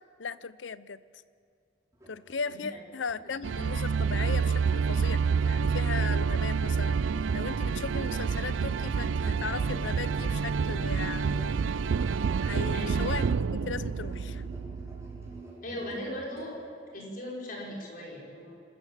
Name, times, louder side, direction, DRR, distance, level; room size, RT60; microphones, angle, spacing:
voice 1, 0.2-1.0 2.1-7.0 7.3-11.7 12.4-14.4, left 5 dB, 85° left, 16 dB, 0.7 m, -37 dB
Musical instrument, 1.9-16.5, right 1 dB, 15° right, 4.2 m, -49 dB
voice 2, 2.5-2.8 12.7-12.9 15.6-16.6 16.9-18.5, left 1 dB, 50° left, -2 dB, 5.4 m, -38 dB
sound 1, 3.4-15.4, right 5 dB, 90° right, 0.4 m, -28 dB
26.5 x 14.0 x 7.4 m, 2.4 s
head